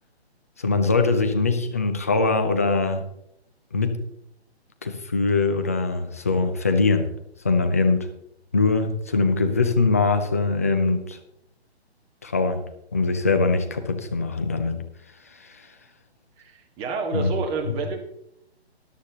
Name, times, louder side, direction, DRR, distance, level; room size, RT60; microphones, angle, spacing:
voice 1, 0.6-3.0 3.7-4.0 4.8-7.1 7.4-8.1 8.5-11.2 12.2-12.6 12.9-14.8 15.4-15.7 17.1-17.3 17.7-17.8, left 3 dB, 15° left, 7 dB, 0.4 m, -22 dB
voice 2, 16.4-18.0, right 4 dB, 20° right, 3 dB, 1.5 m, -29 dB
13.5 x 11.0 x 2.9 m, 0.78 s
figure-of-eight pair, 140°, 33 cm